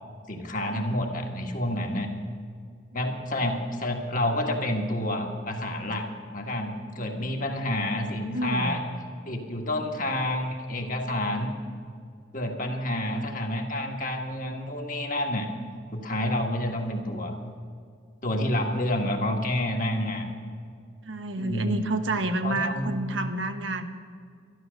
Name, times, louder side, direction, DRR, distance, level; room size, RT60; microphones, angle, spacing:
voice 1, 0.3-2.1 2.9-8.8 9.3-11.5 12.3-15.5 15.9-17.4 18.2-20.3 21.4-21.9 22.4-23.2, left 1 dB, 40° left, 2 dB, 1.6 m, -29 dB
voice 2, 8.3-8.8 21.0-23.9, right 2 dB, 70° right, 7 dB, 1.0 m, -29 dB
12.5 x 11.5 x 6.6 m, 2.2 s
head